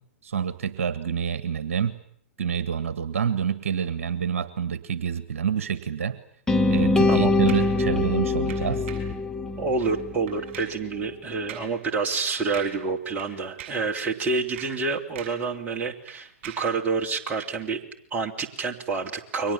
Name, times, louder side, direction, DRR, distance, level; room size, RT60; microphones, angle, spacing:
voice 1, 0.2-1.9 2.4-6.2 6.7-8.8, right 7 dB, 65° right, 13 dB, 1.7 m, -27 dB
sound 1, 6.5-10.5, left 2 dB, 5° left, 1.5 m, -23 dB
sound 2, 7.5-7.8 8.5-9.2 9.7-9.9 10.3-10.8 11.5-11.8 12.1-12.2 12.5-12.9 13.2-13.9 14.4-15.5 15.8-16.8 17.4-17.5, right 8 dB, 45° right, 7.4 m, -43 dB
voice 2, 9.6-17.8 18.1-19.5, right 4 dB, 20° right, 2 dB, 3.0 m, -28 dB
29.5 x 23.5 x 7.3 m, 0.65 s
figure-of-eight pair, 115°, 8 cm